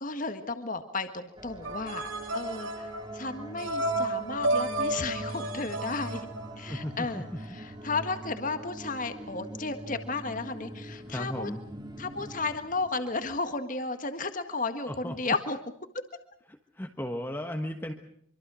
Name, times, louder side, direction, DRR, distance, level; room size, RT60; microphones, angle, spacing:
voice 1, 0.0-2.1 2.3-2.9 3.1-6.3 6.6-11.5 12.0-15.6, left 3 dB, 40° left, 8 dB, 1.8 m, -33 dB
sound 1, 1.4-13.4, right 1 dB, 20° right, 2.3 m, -43 dB
sound 2, 1.6-7.0, right 2 dB, 75° right, 4.1 m, -32 dB
voice 2, 6.7-7.2 11.1-11.6 14.9-15.3 16.7-17.9, equal, 10° left, 4 dB, 1.3 m, -35 dB
25.5 x 24.5 x 6.3 m, 0.68 s
head